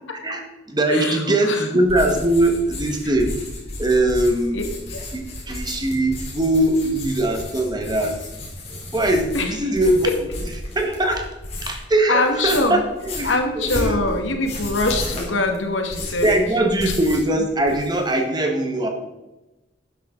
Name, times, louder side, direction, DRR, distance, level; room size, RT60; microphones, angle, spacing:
voice 1, 0.7-3.3 3.8-4.6 5.1-8.2 8.7-11.3 11.6-13.3 13.6-14.0 15.1-15.3 16.2-18.9, right 1 dB, 20° right, 4 dB, 1.6 m, -21 dB
sound 1, 1.8-11.9 12.2-17.3 17.6-18.1, left 1 dB, 35° left, 3.6 m, -33 dB
voice 2, 12.1-12.8 13.2-16.3, left 2 dB, 85° left, 4 dB, 2.0 m, -23 dB
12.5 x 10.5 x 3.9 m, 1.0 s
head